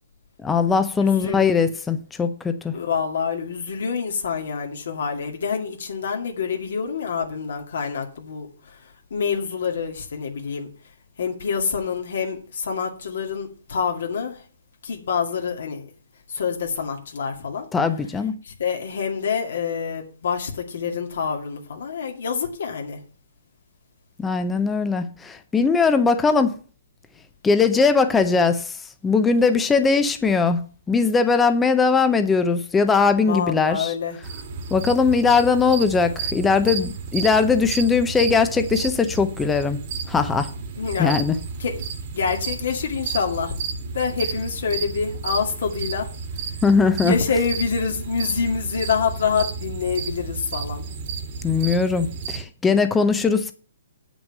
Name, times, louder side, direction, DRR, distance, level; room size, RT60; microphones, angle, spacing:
voice 1, 0.4-2.8 17.7-18.4 24.2-26.6 27.4-28.8 29.0-30.6 30.9-33.9 34.7-39.8 40.1-40.5 41.0-41.4 46.6-47.1 51.4-53.5, left 5 dB, 5° left, 0.6 m, -20 dB
voice 2, 1.0-1.4 2.7-8.7 9.1-10.7 11.2-14.4 14.8-15.9 16.3-17.7 18.4-23.0 33.2-34.2 40.8-41.2 41.6-41.8 42.1-43.6 43.9-46.1 47.0-50.9, left 6 dB, 65° left, 2.2 m, -26 dB
sound 1, 34.2-52.4, right 5 dB, 35° right, 1.5 m, -32 dB
8.8 x 6.2 x 6.5 m
hypercardioid pair, 170°, 0 cm